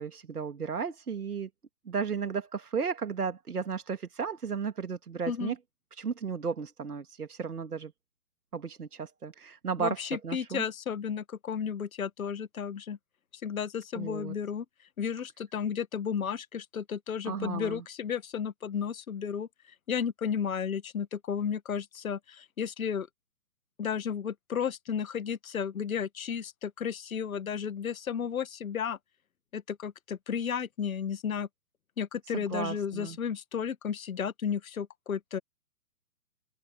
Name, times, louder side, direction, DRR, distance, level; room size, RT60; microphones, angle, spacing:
voice 1, 0.0-1.5 1.9-5.6 5.9-7.9 8.5-10.6 13.9-14.3 17.2-17.8 32.3-33.2, right 6 dB, 80° right, 2.0 m, -34 dB
voice 2, 9.8-13.0 13.4-14.6 15.0-19.5 19.9-23.1 23.8-29.0 29.5-31.5 32.0-35.4, left 7 dB, 65° left, 1.5 m, -33 dB
figure-of-eight pair, 135°, 45 cm